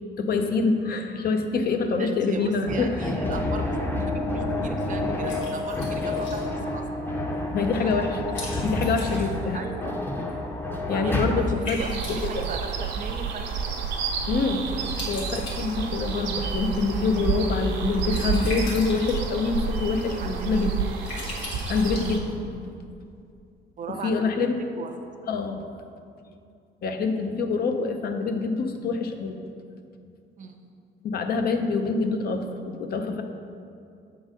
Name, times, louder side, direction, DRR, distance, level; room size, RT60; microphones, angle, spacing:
voice 1, 0.2-3.1 7.5-9.6 10.9-11.8 12.1-12.5 14.3-14.7 15.1-20.8 21.7-22.3 23.9-24.5 25.3-25.7 26.8-29.4 31.0-33.2, left 4 dB, 60° left, 6 dB, 0.6 m, -26 dB
voice 2, 2.0-7.1 9.2-9.3 9.5-10.0 11.0-11.9 12.3-13.5 14.7-14.9 20.2-20.8 23.8-24.3 24.8-24.9 30.4-30.7, right 5 dB, 45° right, 5 dB, 0.6 m, -37 dB
sound 1, 2.7-11.3, left 2 dB, 10° left, 0.7 m, -29 dB
Liquid, 3.3-22.7, left 1 dB, 90° left, 1.7 m, -42 dB
sound 2, 11.8-22.2, right 5 dB, 90° right, 0.8 m, -29 dB
7.3 x 4.0 x 5.0 m, 2.4 s
cardioid pair, 120°, 18 cm